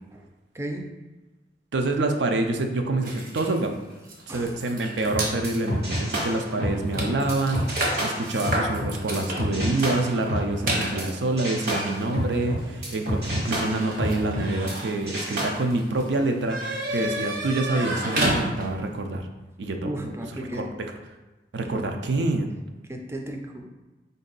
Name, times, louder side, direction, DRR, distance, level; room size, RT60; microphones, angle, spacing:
voice 1, 0.5-0.9 4.3-4.6 19.8-20.6 21.7-21.8 22.9-23.7, right 1 dB, 15° right, 3 dB, 0.4 m, -34 dB
voice 2, 1.7-3.7 4.3-19.3 19.6-20.9 21.5-22.5, right 2 dB, 85° right, 4 dB, 0.5 m, -27 dB
sound 1, 3.0-5.4 6.1-6.2 6.5-18.9, right 1 dB, 50° right, 0.8 m, -32 dB
sound 2, 5.1-11.1 11.4-14.8 15.1-15.4, equal, 70° right, 1.5 m, -29 dB
4.4 x 2.7 x 3.9 m, 1.1 s
head